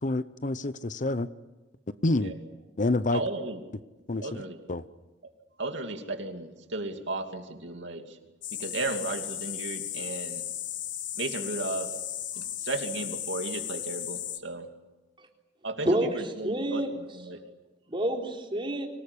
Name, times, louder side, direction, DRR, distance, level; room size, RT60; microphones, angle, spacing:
voice 1, 0.0-1.3 2.0-2.3 2.8-3.2 4.1-4.9, left 2 dB, 45° left, 14 dB, 0.8 m, -28 dB
voice 2, 3.1-3.6 4.2-4.6 5.6-8.0 8.6-10.4 11.2-11.9 12.4-14.7 15.6-16.8 17.1-17.4, right 2 dB, 75° right, 4 dB, 2.8 m, -34 dB
sound 1, 8.4-14.4, left 11 dB, 75° left, 1.6 m, -35 dB
voice 3, 15.9-16.9 17.9-18.9, right 1 dB, 30° right, 1 dB, 3.9 m, -28 dB
25.5 x 19.0 x 9.9 m, 1.1 s
head